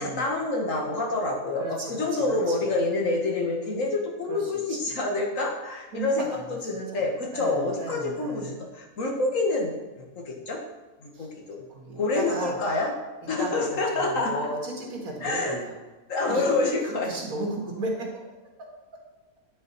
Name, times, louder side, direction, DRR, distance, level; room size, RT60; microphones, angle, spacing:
voice 1, 0.0-9.7 10.1-10.6 11.0-11.6 11.9-12.9 13.3-14.5 15.2-15.6 16.1-17.1, left 2 dB, 65° left, 0 dB, 1.7 m, -27 dB
voice 2, 1.6-2.6 4.3-4.8 5.9-7.0 7.3-8.6 11.1-11.3 11.7-12.6 13.4-15.8 16.3-16.4 17.1-18.2 18.6-19.0, right 2 dB, 75° right, -1 dB, 2.1 m, -35 dB
9.5 x 4.9 x 4.1 m, 1.1 s
omnidirectional pair, 1.5 m